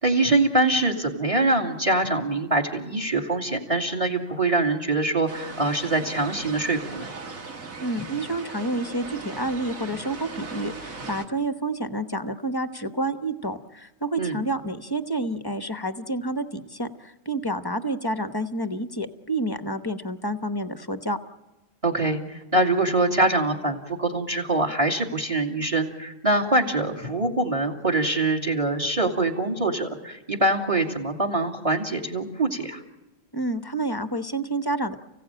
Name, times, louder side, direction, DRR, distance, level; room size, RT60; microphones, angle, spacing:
voice 1, 0.0-7.0 14.2-14.4 21.8-32.8, right 2 dB, 25° right, 5 dB, 2.5 m, -24 dB
sound 1, 5.3-11.3, right 3 dB, 80° right, 2.3 m, -38 dB
voice 2, 7.8-21.2 33.3-35.0, right 1 dB, 20° left, 10 dB, 1.0 m, -29 dB
30.0 x 16.5 x 8.9 m, 1.1 s
omnidirectional pair, 1.4 m